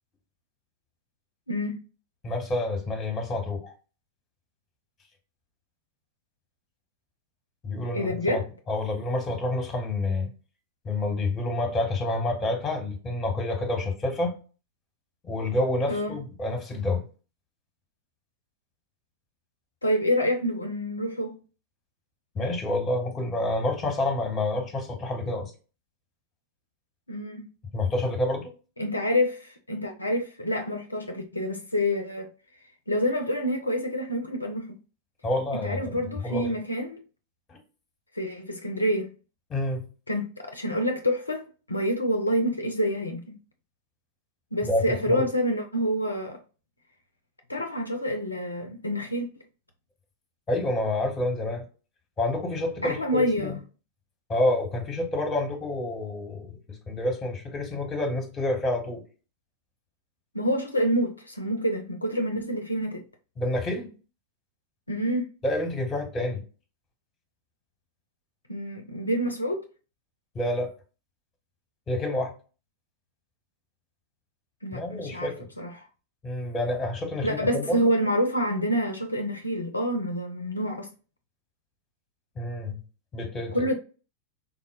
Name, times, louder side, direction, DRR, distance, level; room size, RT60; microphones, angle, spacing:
voice 1, 1.5-1.8 7.9-8.4 15.9-16.2 19.8-21.4 27.1-27.5 28.8-32.3 32.9-34.8 35.5-37.0 38.1-39.1 40.1-43.4 44.5-46.4 47.5-49.3 52.8-53.5 60.3-63.0 64.9-65.3 68.5-69.6 74.6-75.3 75.6-75.9 77.2-80.9 83.5-83.7, equal, 80° left, 0.4 m, -27 dB
voice 2, 2.2-3.7 7.6-8.4 8.7-10.3 10.8-14.3 15.2-17.0 22.3-25.5 27.7-28.5 35.2-36.5 37.5-37.6 39.5-39.8 44.6-45.3 50.5-51.6 52.2-53.6 54.3-59.0 63.4-63.9 65.4-66.4 70.3-70.7 71.9-72.3 74.7-75.5 76.2-77.9 82.3-82.8 83.1-83.7, left 2 dB, 20° left, 1.0 m, -28 dB
3.8 x 2.0 x 2.2 m
figure-of-eight pair, 90°, 0 cm